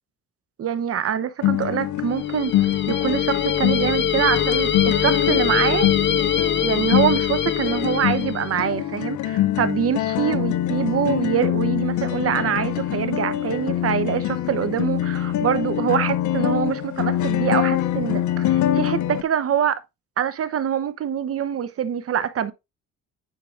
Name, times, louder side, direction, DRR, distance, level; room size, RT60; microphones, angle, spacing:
voice 1, 0.6-5.9 6.6-19.8 20.2-22.5, right 9 dB, 50° right, 0.8 m, -24 dB
sound 1, 1.4-19.2, left 12 dB, 75° left, 0.6 m, -24 dB
sound 2, 2.2-8.5, left 8 dB, 40° left, 0.7 m, -24 dB
10.0 x 4.6 x 2.4 m
cardioid pair, 90°, 30 cm